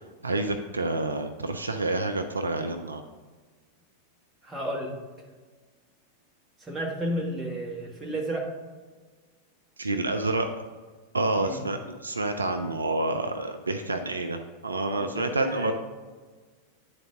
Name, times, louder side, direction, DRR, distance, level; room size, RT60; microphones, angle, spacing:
voice 1, 0.0-3.0 9.8-10.6 11.1-15.7, right 2 dB, 75° right, 7 dB, 0.4 m, -28 dB
voice 2, 4.4-5.0 6.6-8.5 11.4-11.6 15.0-15.7, right 1 dB, 15° right, -2 dB, 1.6 m, -32 dB
10.0 x 4.0 x 3.7 m, 1.4 s
figure-of-eight pair, 90°, 0 cm